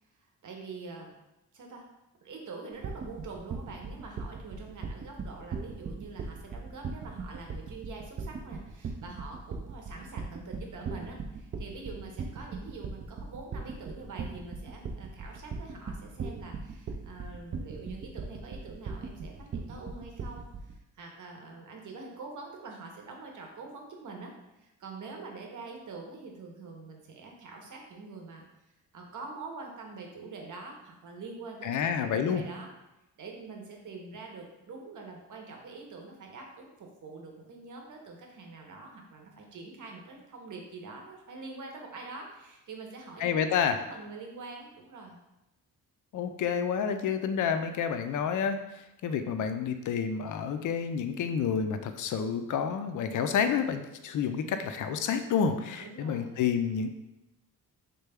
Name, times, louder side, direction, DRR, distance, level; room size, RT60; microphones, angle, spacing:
voice 1, 0.4-1.2 1.5-1.9 2.2-24.3 24.6-28.5 28.9-32.7 33.2-43.6 43.9-45.2 54.3-54.6 55.8-56.3, right 3 dB, 50° right, 1 dB, 0.8 m, -45 dB
sound 1, 2.8-20.7, right 4 dB, 35° right, 0.4 m, -38 dB
voice 2, 31.6-32.4 43.2-43.8 46.1-56.9, left 7 dB, 55° left, 8 dB, 0.4 m, -29 dB
3.2 x 2.2 x 3.4 m, 0.95 s
cardioid pair, 65°, 38 cm